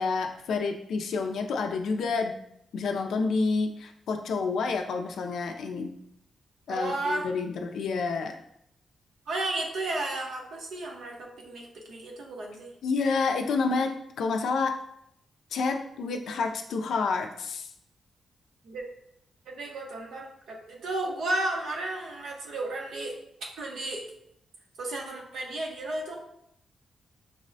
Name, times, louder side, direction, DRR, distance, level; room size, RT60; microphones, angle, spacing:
voice 1, 0.0-2.3 2.7-5.9 6.7-8.4 12.8-14.8 15.5-17.7, left 4 dB, 85° left, 4 dB, 0.3 m, -29 dB
voice 2, 6.7-7.3 9.3-12.7 18.6-18.8 19.5-23.2 23.6-24.0 24.8-26.2, right 2 dB, 90° right, 0 dB, 0.8 m, -33 dB
6.0 x 2.0 x 2.6 m, 0.75 s
wide cardioid pair, 130°, 0 cm